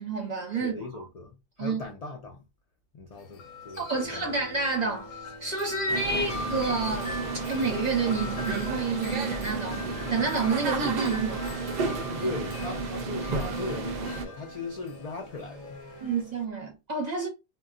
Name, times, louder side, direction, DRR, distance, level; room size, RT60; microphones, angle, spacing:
voice 1, 0.0-1.0 1.6-1.8 3.8-7.1 7.5-11.4 16.0-17.3, right 4 dB, 40° right, 0.8 m, -29 dB
voice 2, 0.5-2.4 2.9-4.3 6.1-6.2 12.2-15.8, left 2 dB, 60° left, 0.4 m, -38 dB
Wind chime, 3.1-16.5, left 3 dB, 85° left, 1.0 m, -42 dB
sound 1, 4.0-7.5 8.9-16.2, left 1 dB, 25° left, 0.7 m, -47 dB
sound 2, 5.9-14.3, right 4 dB, 70° right, 0.4 m, -32 dB
2.2 x 2.2 x 3.6 m
omnidirectional pair, 1.3 m